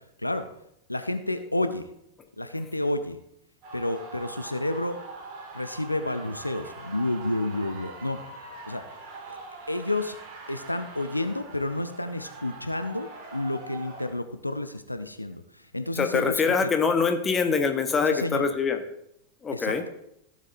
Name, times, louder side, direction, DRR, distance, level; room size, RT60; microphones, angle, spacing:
voice 1, 0.9-1.9 2.4-3.2 3.7-5.0 5.5-8.2 8.7-8.8 9.3-9.4 9.7-10.2 10.5-16.7 18.1-18.5 19.5-19.9, left 1 dB, 85° left, 9 dB, 0.5 m, -30 dB
sound 1, 3.6-14.1, right 3 dB, 45° right, 2.3 m, -43 dB
voice 2, 16.0-18.8 19.4-19.8, left 5 dB, 20° left, 6 dB, 1.1 m, -24 dB
15.0 x 7.4 x 2.7 m, 0.78 s
figure-of-eight pair, 90°, 0 cm